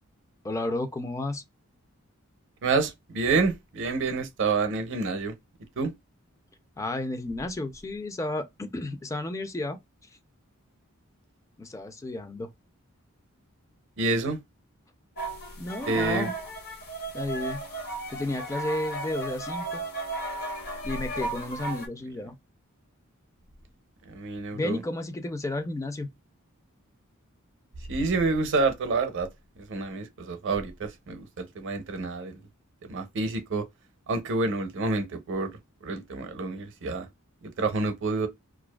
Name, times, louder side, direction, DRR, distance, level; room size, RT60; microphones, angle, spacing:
voice 1, 0.4-1.4 6.8-9.8 11.6-12.5 15.6-16.3 17.1-17.6 18.1-19.8 20.8-22.3 24.5-26.1, left 2 dB, 15° left, 0.4 m, -32 dB
voice 2, 2.6-5.3 5.8-5.9 14.0-14.4 15.9-16.3 24.1-24.8 27.9-29.3 29.6-32.4 32.8-33.7 34.1-35.5 35.8-37.1 37.4-38.3, right 3 dB, 60° right, 0.6 m, -28 dB
sound 1, 15.2-21.9, right 2 dB, 50° left, 0.7 m, -35 dB
2.4 x 2.3 x 2.2 m
head